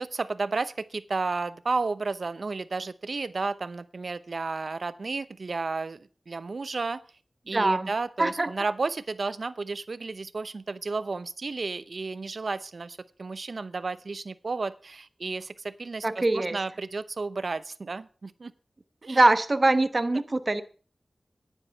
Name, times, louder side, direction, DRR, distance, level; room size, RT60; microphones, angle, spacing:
voice 1, 0.0-7.0 7.5-18.5 19.0-19.2, right 3 dB, 70° right, 15 dB, 0.7 m, -32 dB
voice 2, 7.5-7.9 8.2-8.5 16.0-16.6 19.1-20.6, right 2 dB, 40° right, 11 dB, 1.0 m, -23 dB
10.0 x 9.7 x 5.7 m, 0.39 s
wide cardioid pair, 60°, 0 cm